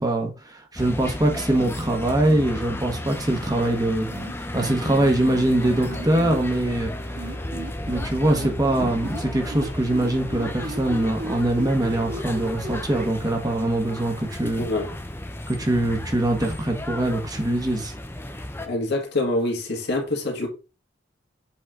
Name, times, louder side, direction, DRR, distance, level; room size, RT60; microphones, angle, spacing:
voice 1, 0.0-4.1 4.4-6.9 7.9-14.7 15.6-17.9, right 1 dB, 20° right, 1.2 m, -23 dB
sound 1, 0.8-18.7, left 1 dB, 10° left, 0.7 m, -34 dB
sound 2, 4.1-6.4 7.2-9.2 9.5-13.1, right 1 dB, 55° right, 2.2 m, -35 dB
sound 3, 4.5-10.0, equal, 35° left, 1.7 m, -44 dB
voice 2, 14.6-14.9 18.7-20.5, left 2 dB, 60° left, 1.9 m, -25 dB
7.4 x 4.2 x 3.7 m
head